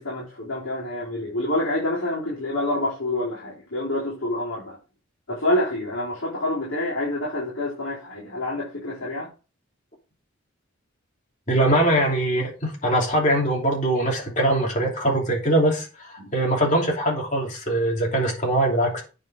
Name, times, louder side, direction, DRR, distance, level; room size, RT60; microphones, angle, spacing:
voice 1, 0.0-4.8 5.3-9.3 16.2-16.3, left 1 dB, 65° left, -7 dB, 4.0 m, -27 dB
voice 2, 11.5-19.0, right 1 dB, 35° left, -1 dB, 2.8 m, -22 dB
9.1 x 5.5 x 4.8 m, 0.32 s
head